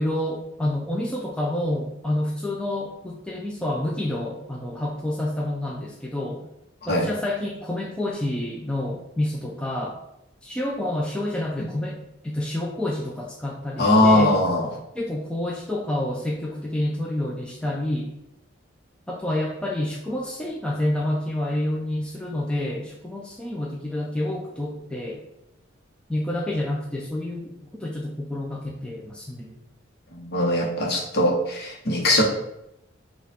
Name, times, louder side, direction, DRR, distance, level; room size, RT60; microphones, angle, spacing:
voice 1, 0.0-6.5 6.9-10.0 10.4-14.3 14.9-18.1 19.1-25.2 26.1-29.6, left 1 dB, 5° left, -3 dB, 0.4 m, -28 dB
voice 2, 13.8-14.7 30.1-32.2, left 1 dB, 55° left, -1 dB, 1.0 m, -20 dB
5.4 x 2.4 x 4.0 m, 0.86 s
head